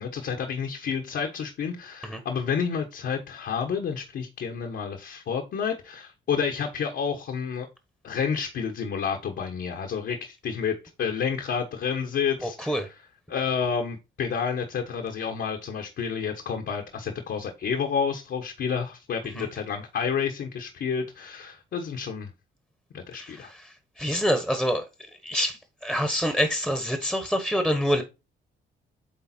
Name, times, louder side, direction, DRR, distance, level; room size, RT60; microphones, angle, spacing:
voice 1, 0.0-7.7 8.0-12.8 13.3-22.3 22.9-23.5, left 6 dB, 65° left, 1.3 m, -30 dB
voice 2, 12.4-12.9 19.3-19.5 23.1-24.9 25.2-28.0, equal, ahead, 1.2 m, -26 dB
8.7 x 3.4 x 4.3 m
cardioid pair, 90°, 20 cm